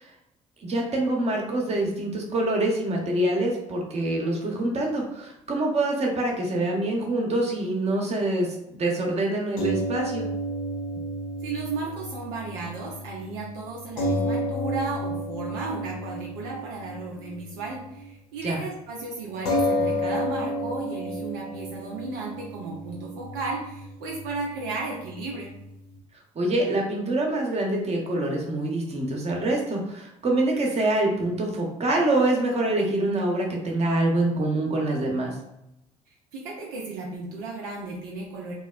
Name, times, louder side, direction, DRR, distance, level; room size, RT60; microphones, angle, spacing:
voice 1, 0.6-10.3 18.4-18.6 26.3-35.3, right 1 dB, 35° right, 0 dB, 0.8 m, -25 dB
sound 1, 9.6-18.1 18.4-18.6 19.4-26.0, equal, 75° left, 0.5 m, -31 dB
voice 2, 11.4-25.5 36.3-38.5, right 3 dB, 70° right, -2 dB, 0.5 m, -34 dB
2.8 x 2.0 x 2.3 m, 0.86 s
hypercardioid pair, 55°, 18 cm